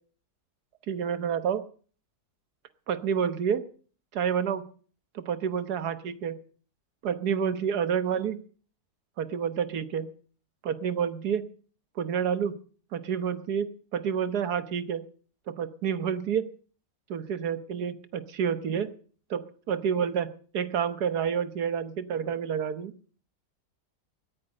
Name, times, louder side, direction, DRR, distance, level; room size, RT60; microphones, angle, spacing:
voice 1, 0.9-1.6 2.9-3.6 4.1-4.7 5.1-6.4 7.0-8.4 9.2-10.1 10.6-11.4 12.0-12.6 12.9-15.0 15.5-16.4 17.1-18.9 19.3-22.9, right 7 dB, 80° right, 12 dB, 1.6 m, -29 dB
17.5 x 9.5 x 6.5 m, 0.42 s
omnidirectional pair, 1.7 m